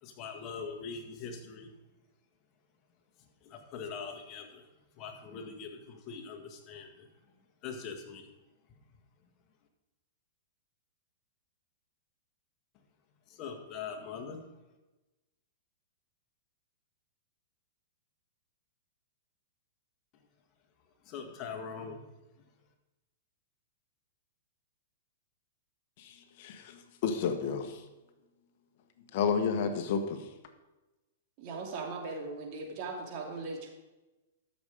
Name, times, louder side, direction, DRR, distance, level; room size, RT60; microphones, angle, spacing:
voice 1, 0.0-1.7 3.4-4.6 5.0-7.1 7.6-8.3 13.3-14.4 21.1-22.1, left 5 dB, 35° left, 4 dB, 1.9 m, -42 dB
voice 2, 26.0-27.8 29.1-30.3, left 6 dB, 55° left, 7 dB, 1.3 m, -31 dB
voice 3, 31.4-33.7, right 3 dB, 45° right, 1 dB, 2.8 m, -39 dB
13.0 x 7.1 x 5.1 m, 1.1 s
hypercardioid pair, 125°, 0 cm